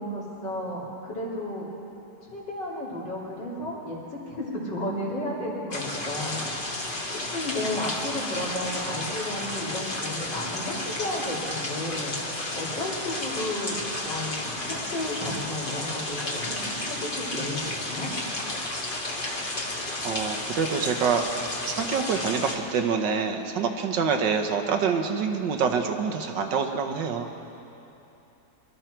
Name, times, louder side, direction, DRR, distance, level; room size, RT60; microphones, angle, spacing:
voice 1, 0.0-1.7 2.3-6.5 7.3-12.2 12.5-18.1, left 1 dB, 80° left, -6 dB, 3.9 m, -33 dB
sound 1, 5.7-22.6, left 2 dB, 30° left, 1.5 m, -32 dB
voice 2, 20.0-21.3 21.7-27.3, right 6 dB, 85° right, 5 dB, 1.7 m, -26 dB
24.5 x 12.5 x 4.5 m, 2.9 s
omnidirectional pair, 1.9 m